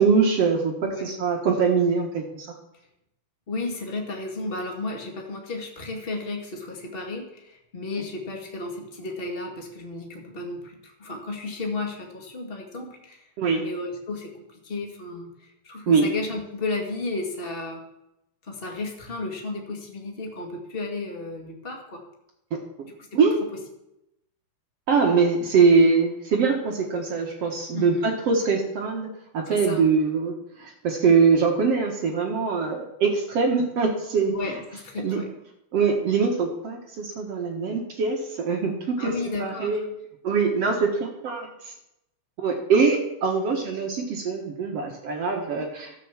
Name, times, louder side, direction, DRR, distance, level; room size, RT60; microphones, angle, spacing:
voice 1, 0.0-2.5 13.4-13.6 15.9-16.0 22.5-22.6 23.1-23.4 24.9-29.1 29.3-34.3 35.0-35.2 35.7-39.1 39.4-39.8 40.2-41.7 42.4-45.9, right 5 dB, 60° right, 2 dB, 1.6 m, -23 dB
voice 2, 0.8-1.1 3.5-13.2 13.6-17.8 18.4-22.0 22.8-23.2 27.7-28.1 29.5-29.8 34.3-35.3 39.0-39.8, left 3 dB, 50° left, 1 dB, 0.6 m, -33 dB
13.5 x 8.4 x 7.4 m, 0.85 s
omnidirectional pair, 4.9 m